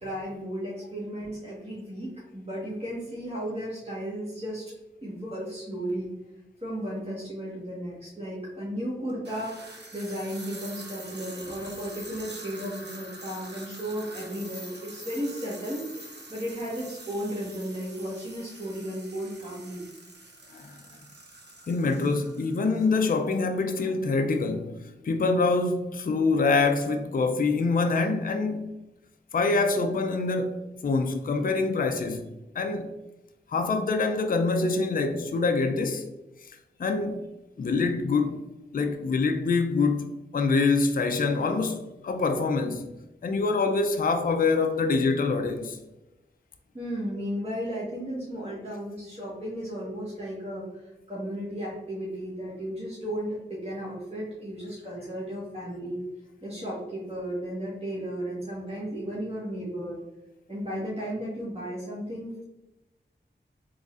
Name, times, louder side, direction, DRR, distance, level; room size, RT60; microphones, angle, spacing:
voice 1, 0.0-4.7 5.0-6.1 6.6-19.8 46.7-56.0 56.4-60.0 60.5-62.4, equal, 30° right, 1.3 m, -34 dB
sound 1, 5.8-6.0 7.0-7.1 9.1-23.2, right 2 dB, 65° right, 0.8 m, -45 dB
voice 2, 21.7-28.7 29.3-32.3 32.5-32.9 33.5-36.1 36.8-37.2 37.6-38.4 38.7-42.9 43.2-45.8, left 3 dB, 50° left, 0.4 m, -25 dB
3.8 x 3.1 x 2.4 m
cardioid pair, 40°, 19 cm